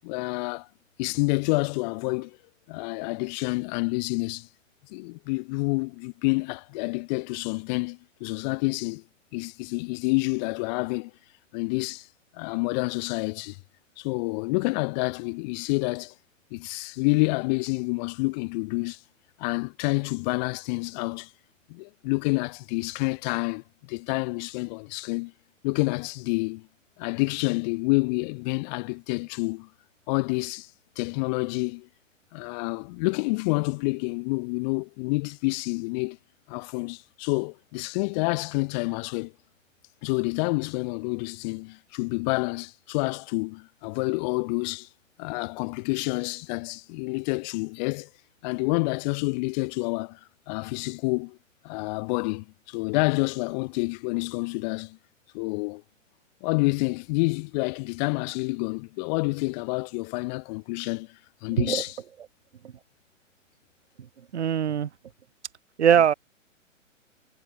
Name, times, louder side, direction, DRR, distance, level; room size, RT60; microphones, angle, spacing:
voice 1, 0.0-0.7 1.0-2.4 2.7-4.5 4.9-9.0 9.3-11.1 11.5-12.1 12.3-13.6 14.0-16.1 16.5-19.0 19.4-21.3 21.7-25.3 25.6-26.7 27.0-29.7 30.1-30.7 31.0-31.9 32.3-36.2 36.5-39.3 40.0-44.9 45.2-48.1 48.4-50.2 50.5-51.4 51.6-55.0 55.3-55.8 56.4-62.0, left 28 dB, 35° left, 7.4 m, -28 dB
voice 2, 64.3-64.9 65.8-66.1, right 9 dB, 60° right, 1.9 m, -21 dB
figure-of-eight pair, 120°, 39 cm